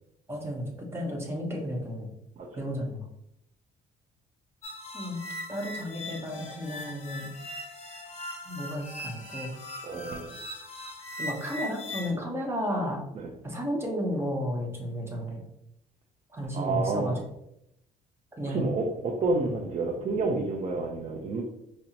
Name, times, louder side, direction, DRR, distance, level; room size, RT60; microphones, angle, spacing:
voice 1, 0.3-2.1 2.5-3.1 4.9-5.2 5.5-7.3 8.5-9.5 11.2-13.0 13.4-15.4 16.3-17.2 18.4-18.6, equal, 15° right, -1 dB, 0.9 m, -33 dB
sound 1, 4.6-12.1, left 1 dB, 40° left, 1.1 m, -40 dB
voice 2, 9.8-10.4 13.1-13.3 16.5-17.2 18.4-21.4, right 3 dB, 40° right, -1 dB, 0.6 m, -29 dB
5.2 x 2.0 x 2.8 m, 0.81 s
cardioid pair, 110°, 17 cm